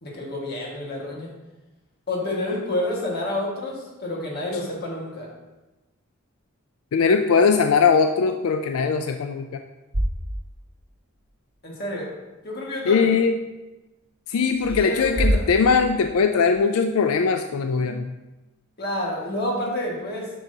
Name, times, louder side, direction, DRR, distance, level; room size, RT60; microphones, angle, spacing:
voice 1, 0.0-1.4 2.1-5.3 11.6-12.2 12.4-13.1 14.6-15.5 18.8-20.4, left 1 dB, 50° left, -3 dB, 1.7 m, -29 dB
voice 2, 6.9-9.6 12.9-13.4 14.3-18.2, left 5 dB, 90° left, 6 dB, 0.4 m, -20 dB
sound 1, 9.9-10.9 11.2-11.3 14.5-16.6, equal, 85° right, 1.5 m, -27 dB
8.9 x 6.0 x 2.8 m, 1.1 s
head